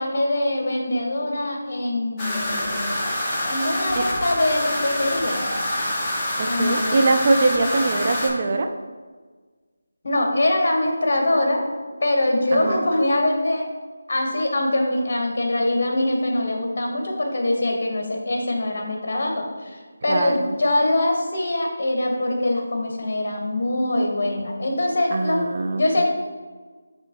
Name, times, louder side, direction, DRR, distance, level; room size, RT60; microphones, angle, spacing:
voice 1, 0.0-3.0 3.5-5.5 6.4-7.0 10.0-11.7 12.0-13.7 14.1-25.5 25.8-26.1, left 1 dB, 55° left, 2 dB, 1.2 m, -23 dB
sound 1, 2.2-8.3, left 1 dB, 15° left, 1.1 m, -26 dB
voice 2, 6.4-8.7 12.5-12.8 20.1-20.5 25.1-26.0, right 3 dB, 35° right, 6 dB, 0.4 m, -22 dB
9.7 x 3.4 x 2.9 m, 1.4 s
figure-of-eight pair, 165°, 0 cm